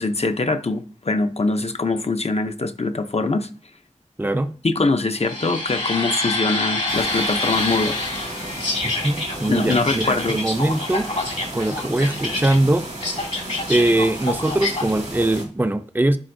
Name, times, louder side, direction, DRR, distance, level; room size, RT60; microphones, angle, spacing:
voice 1, 0.0-3.5 4.6-8.0 9.5-10.4, left 3 dB, 60° left, 0.6 m, -23 dB
voice 2, 4.2-4.5 8.8-11.1 11.5-12.8 13.7-16.2, right 1 dB, 15° right, 0.5 m, -21 dB
sound 1, 5.2-14.9, left 2 dB, 80° left, 2.0 m, -27 dB
sound 2, 6.9-15.4, right 1 dB, 70° right, 1.6 m, -34 dB
10.5 x 4.2 x 2.6 m
wide cardioid pair, 50°, 12 cm